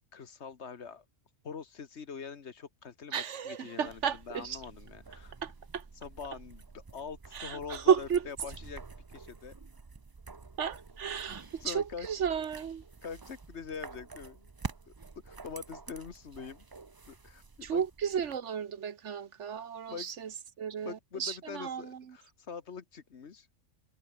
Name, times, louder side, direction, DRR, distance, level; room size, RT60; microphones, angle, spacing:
voice 1, 0.1-1.0 1.4-5.3 6.0-8.8 9.1-9.6 11.6-12.1 13.0-14.5 14.9-15.0 15.2-16.6 17.1-17.8 19.9-20.1 20.8-23.5, left 6 dB, 60° left, 1.6 m, -44 dB
voice 2, 3.1-4.6 5.4-5.8 7.3-8.3 10.6-12.8 17.6-20.3 20.6-22.0, right 7 dB, 70° right, 1.4 m, -33 dB
sound 1, 3.9-18.4, right 4 dB, 25° right, 0.5 m, -48 dB
omnidirectional pair, 1.3 m